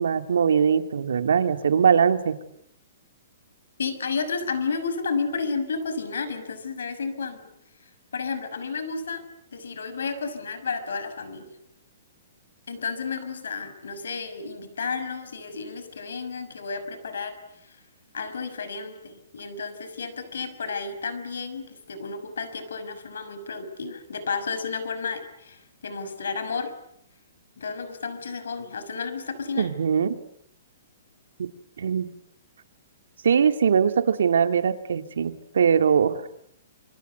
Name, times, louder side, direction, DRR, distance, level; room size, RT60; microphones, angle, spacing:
voice 1, 0.0-2.4 29.6-30.2 31.4-31.5 31.8-32.1 33.2-36.1, right 7 dB, 80° right, 8 dB, 2.6 m, -21 dB
voice 2, 3.8-7.5 8.1-9.2 9.5-11.5 12.7-17.4 17.6-17.7 18.1-26.7 27.6-29.7, left 5 dB, 90° left, 12 dB, 5.9 m, -32 dB
27.5 x 25.0 x 8.1 m, 0.72 s
hypercardioid pair, 160°, 0 cm